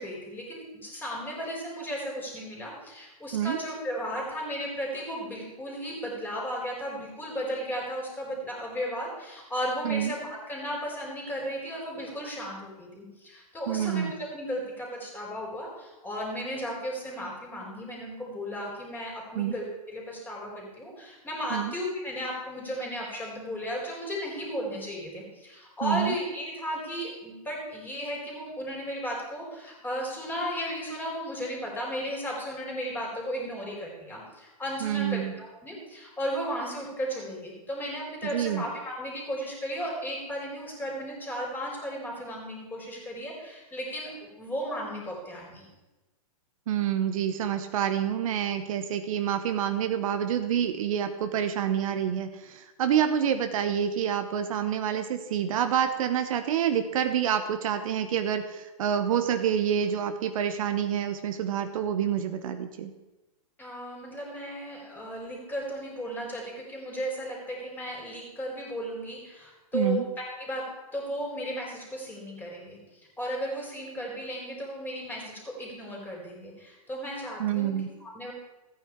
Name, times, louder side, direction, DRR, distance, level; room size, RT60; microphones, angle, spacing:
voice 1, 0.0-45.7 63.6-70.6 70.9-72.8 73.2-77.8 78.0-78.3, equal, 10° left, -2 dB, 3.9 m, -35 dB
voice 2, 13.7-14.1 19.4-19.5 21.5-21.7 25.8-26.1 34.8-35.4 38.2-38.6 46.7-62.9 69.7-70.0 77.4-77.9, right 9 dB, 65° right, 8 dB, 1.0 m, -27 dB
14.0 x 9.1 x 4.7 m, 1.1 s
hypercardioid pair, 135°, 19 cm